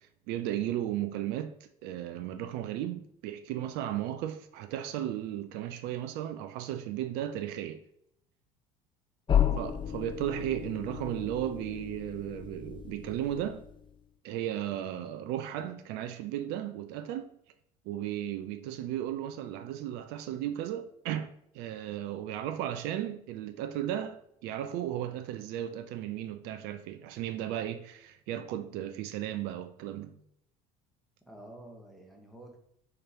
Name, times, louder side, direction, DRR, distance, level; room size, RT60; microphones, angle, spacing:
voice 1, 0.3-1.5 1.8-7.8 9.6-13.6 14.2-17.3 17.9-30.2, right 11 dB, 55° right, 0.5 m, -35 dB
sound 1, 9.3-14.0, left 9 dB, 25° left, 0.4 m, -33 dB
voice 2, 31.3-32.6, right 1 dB, ahead, 1.2 m, -49 dB
4.5 x 3.8 x 2.9 m
figure-of-eight pair, 65°, 20 cm